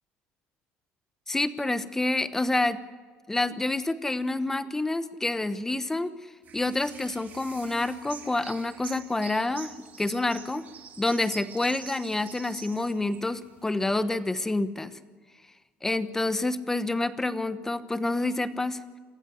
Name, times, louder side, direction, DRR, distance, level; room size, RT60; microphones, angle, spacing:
voice 1, 1.3-2.8 3.3-6.1 6.5-10.6 11.0-14.9 15.8-18.8, left 2 dB, 10° left, 12 dB, 1.0 m, -28 dB
sound 1, 6.4-14.0, right 7 dB, 40° right, 2.8 m, -47 dB
28.0 x 15.0 x 7.9 m, 1.4 s
cardioid pair, 140°, 4 cm